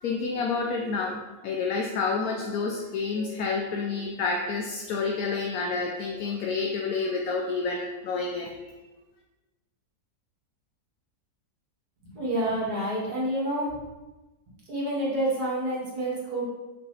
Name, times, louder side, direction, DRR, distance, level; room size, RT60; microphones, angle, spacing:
voice 1, 0.0-8.5, left 4 dB, 65° left, 1 dB, 1.0 m, -29 dB
voice 2, 12.1-13.8 14.7-16.4, right 1 dB, 60° right, -6 dB, 2.5 m, -28 dB
6.1 x 5.7 x 3.3 m, 1.1 s
omnidirectional pair, 1.9 m